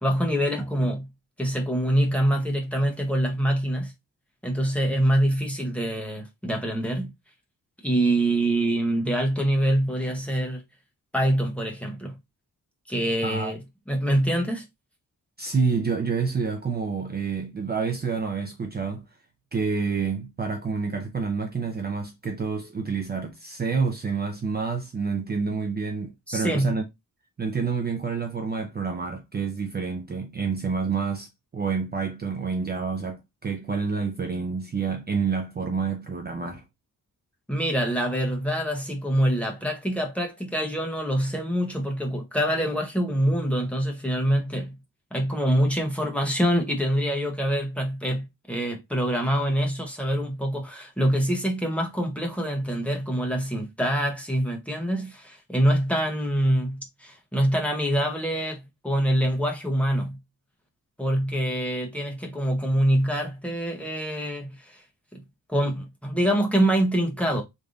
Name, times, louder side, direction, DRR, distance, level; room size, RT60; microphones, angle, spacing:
voice 1, 0.0-1.1 1.4-3.9 4.4-7.1 7.8-10.6 11.1-12.2 12.9-13.6 13.9-14.6 26.3-26.8 37.5-44.8 45.1-60.2 61.0-64.8 65.1-65.2 65.5-67.4, right 1 dB, 5° left, 0.8 m, -25 dB
voice 2, 13.2-13.5 15.4-19.0 19.5-26.8 27.4-36.6, right 5 dB, 30° right, 0.5 m, -28 dB
3.3 x 2.6 x 3.6 m
wide cardioid pair, 170°, 34 cm